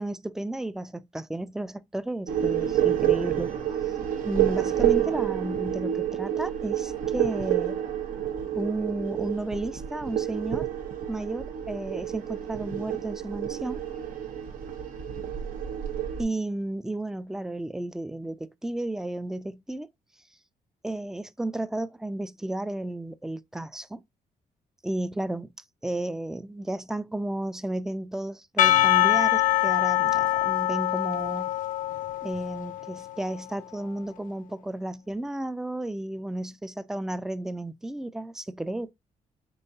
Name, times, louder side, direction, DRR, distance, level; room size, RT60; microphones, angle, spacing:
voice 1, 0.0-3.5 4.2-7.8 8.6-10.7 11.1-13.8 16.2-19.9 20.8-24.0 24.8-25.5 25.8-31.5 32.2-38.9, right 1 dB, 5° right, 0.3 m, -33 dB
sound 1, 2.3-16.2, right 11 dB, 80° right, 1.0 m, -29 dB
Percussion / Church bell, 28.6-33.1, left 14 dB, 65° left, 0.5 m, -24 dB
5.4 x 3.6 x 2.6 m
cardioid pair, 125°, 14 cm